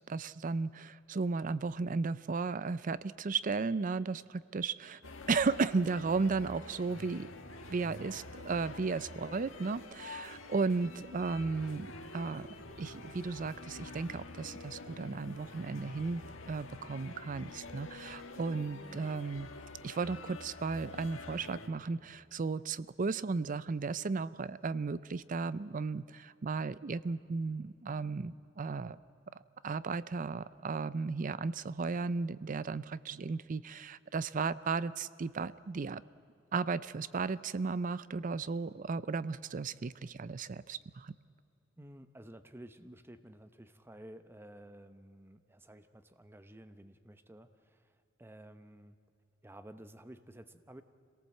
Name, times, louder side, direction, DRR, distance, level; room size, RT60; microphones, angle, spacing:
voice 1, 0.1-5.0 5.3-7.3 7.7-16.2 16.5-19.5 19.8-29.0 29.6-36.0 36.5-41.1, right 4 dB, 40° right, 17 dB, 0.5 m, -35 dB
sound 1, 5.0-21.7, left 2 dB, 75° left, 1.8 m, -47 dB
voice 2, 41.8-49.0 49.4-50.8, right 1 dB, 10° right, 10 dB, 0.8 m, -53 dB
26.0 x 18.0 x 7.6 m, 2.6 s
head